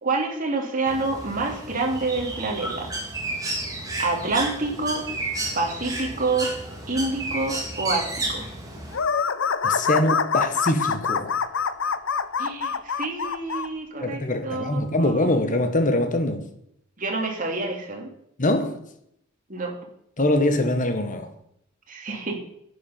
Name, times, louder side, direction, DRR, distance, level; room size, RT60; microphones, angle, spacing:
voice 1, 0.0-2.9 4.0-5.1 5.5-6.5 6.9-8.4 12.4-15.3 17.0-18.1 19.5-19.7 21.9-22.3, right 3 dB, 40° right, 2.4 m, -27 dB
Bird, 0.9-9.0, right 2 dB, 15° right, 2.3 m, -32 dB
sound 1, 8.9-13.7, left 6 dB, 65° left, 0.6 m, -25 dB
voice 2, 9.6-11.4 14.0-16.4 18.4-18.8 20.2-21.3, left 1 dB, 40° left, 1.3 m, -23 dB
11.0 x 8.6 x 5.7 m
head